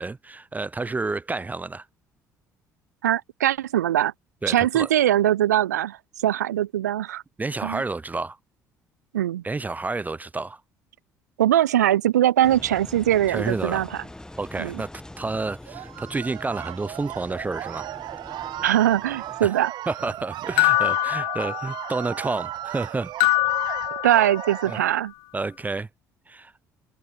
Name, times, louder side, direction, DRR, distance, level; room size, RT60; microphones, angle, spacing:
voice 1, 0.0-1.9 4.4-4.9 7.4-8.4 9.4-10.6 13.3-13.9 14.4-14.9 15.2-17.9 19.4-19.5 19.9-23.1 24.7-24.8 25.3-25.9 26.3-26.5, right 3 dB, 20° right, 0.6 m, -30 dB
voice 2, 3.0-4.1 4.5-7.2 7.6-7.8 9.1-9.4 11.4-14.0 14.6-14.8 18.6-19.7 23.7-23.8 24.0-25.1, right 12 dB, 80° right, 0.4 m, -21 dB
Engine, 12.4-19.4, left 1 dB, 10° left, 2.0 m, -44 dB
sound 1, 15.7-24.8, right 14 dB, 55° right, 1.0 m, -36 dB
sound 2, 20.6-22.0 23.2-24.7, left 30 dB, 65° left, 0.5 m, -24 dB
figure-of-eight pair, 50°, 9 cm